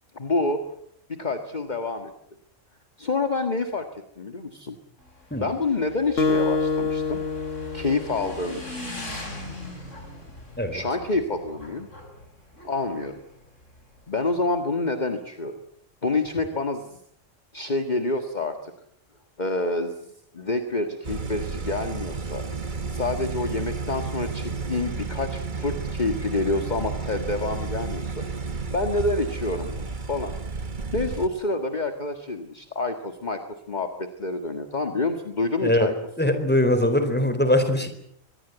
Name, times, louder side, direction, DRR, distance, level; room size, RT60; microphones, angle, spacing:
voice 1, 0.1-0.6 1.1-2.1 3.0-3.9 4.2-4.8 5.4-7.2 7.7-8.8 10.7-11.9 12.6-13.2 14.1-15.6 16.0-17.0 17.5-18.7 19.4-22.5 22.9-28.3 28.7-30.3 30.9-35.9, left 3 dB, 35° left, 6 dB, 1.8 m, -28 dB
Motorcycle / Engine, 5.0-14.2, left 1 dB, 70° left, 6.5 m, -41 dB
Acoustic guitar, 6.2-8.9, left 4 dB, 50° left, 1.4 m, -26 dB
sound 1, 21.0-31.3, right 4 dB, 40° right, 1.5 m, -32 dB
voice 2, 36.2-37.9, left 1 dB, 10° left, 8 dB, 4.1 m, -21 dB
25.0 x 21.0 x 8.1 m, 0.71 s
omnidirectional pair, 1.3 m